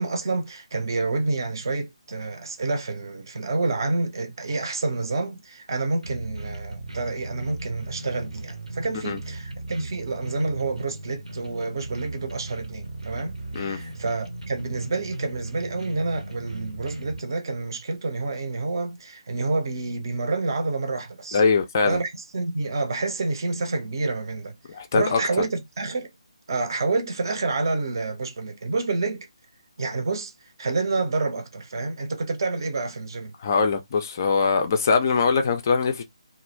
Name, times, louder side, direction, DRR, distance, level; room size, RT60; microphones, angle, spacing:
voice 1, 0.0-21.4 21.8-24.6 24.9-26.1 26.5-29.3 29.8-33.3, right 3 dB, 40° right, 0.5 m, -28 dB
sound 1, 6.0-17.2, right 2 dB, 75° right, 0.7 m, -37 dB
voice 2, 21.3-22.0 24.7-25.2 33.4-36.0, left 5 dB, 30° left, 0.3 m, -22 dB
2.3 x 2.0 x 3.1 m
figure-of-eight pair, 150°, 3 cm